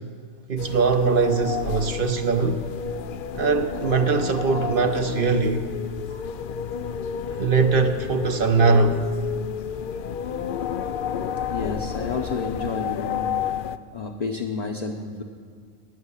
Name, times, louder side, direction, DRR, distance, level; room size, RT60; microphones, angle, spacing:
voice 1, 0.5-2.6 3.3-5.6 7.4-9.1, right 4 dB, 50° right, 0.9 m, -21 dB
sound 1, 0.6-13.8, left 8 dB, 65° left, 0.5 m, -31 dB
voice 2, 11.5-13.3 13.9-15.2, left 4 dB, 35° left, 0.8 m, -30 dB
17.0 x 6.7 x 9.8 m
omnidirectional pair, 1.4 m